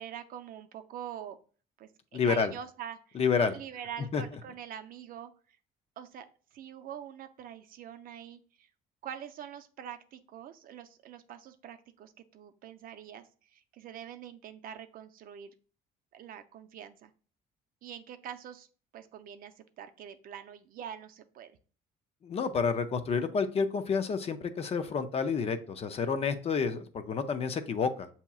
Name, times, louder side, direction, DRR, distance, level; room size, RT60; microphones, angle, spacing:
voice 1, 0.0-1.4 1.8-3.2 3.5-5.3 6.0-6.3 6.5-8.7 9.0-15.5 16.1-17.1 17.8-18.7 18.9-21.6, right 9 dB, 55° right, 9 dB, 0.5 m, -45 dB
voice 2, 2.1-2.5 3.1-3.5 4.1-4.2 22.2-28.1, left 5 dB, 40° left, 9 dB, 0.5 m, -29 dB
7.0 x 2.8 x 2.3 m, 0.40 s
cardioid pair, 110°, 17 cm